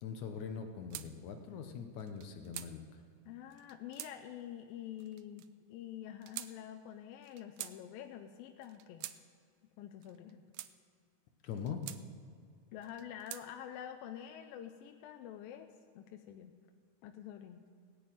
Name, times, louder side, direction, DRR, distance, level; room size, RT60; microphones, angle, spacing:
voice 1, 0.0-2.8 11.4-11.8, left 7 dB, 70° left, 5 dB, 2.1 m, -42 dB
sound 1, 0.9-1.1 2.0-2.7 3.5-4.1 5.0-5.5 6.2-6.5 7.2-7.8 8.6-9.2 10.0-10.7 11.5-12.0 12.8-13.4, right 14 dB, 90° right, 1.7 m, -46 dB
voice 2, 3.3-9.1 9.8-10.4 12.7-15.7 16.0-16.6 17.0-17.7, left 10 dB, 90° left, 6 dB, 2.4 m, -47 dB
17.0 x 6.6 x 9.0 m, 2.2 s
omnidirectional pair, 4.0 m